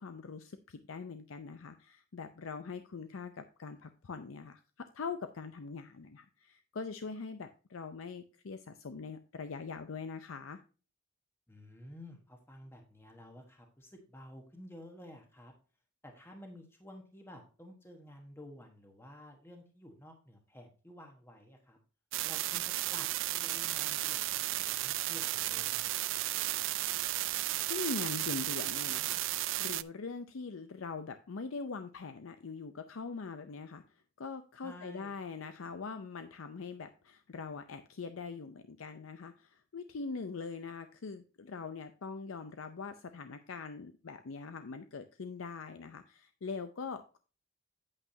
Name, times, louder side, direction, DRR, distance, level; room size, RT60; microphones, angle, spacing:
voice 1, 0.0-10.6 27.7-29.2 29.6-47.2, left 4 dB, 75° left, 9 dB, 0.6 m, -42 dB
voice 2, 11.5-15.5 16.0-21.8 22.2-25.9 34.6-35.2, left 1 dB, 10° left, 2 dB, 1.2 m, -52 dB
sound 1, 22.1-29.8, right 17 dB, 65° right, 0.3 m, -34 dB
8.6 x 8.4 x 2.7 m, 0.35 s
head